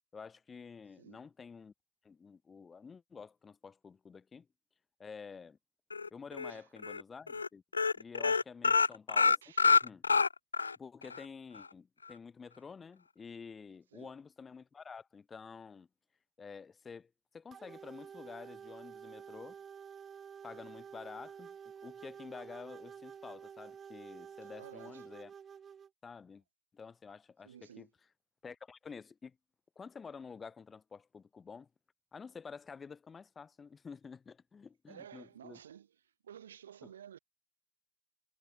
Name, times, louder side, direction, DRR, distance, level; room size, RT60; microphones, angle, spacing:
voice 1, 0.1-1.7 2.0-4.5 5.0-5.6 6.1-7.6 8.0-9.4 9.8-10.0 10.8-15.9 16.4-19.5 20.4-21.5 21.8-25.3 26.0-26.4 26.7-27.9 28.4-29.4 29.7-31.7 32.1-35.6, left 5 dB, 15° left, 3.0 m, -49 dB
sound 1, 5.9-6.5 6.8-7.0 7.3-7.5 7.7-10.8 11.1-11.2 11.6-11.7, left 5 dB, 75° left, 0.3 m, -27 dB
sound 2, 17.5-25.9, right 7 dB, 20° right, 4.8 m, -50 dB
voice 2, 24.5-25.1 27.4-27.9 34.9-37.2, right 9 dB, 65° right, 2.6 m, -53 dB
figure-of-eight pair, 90°, 0 cm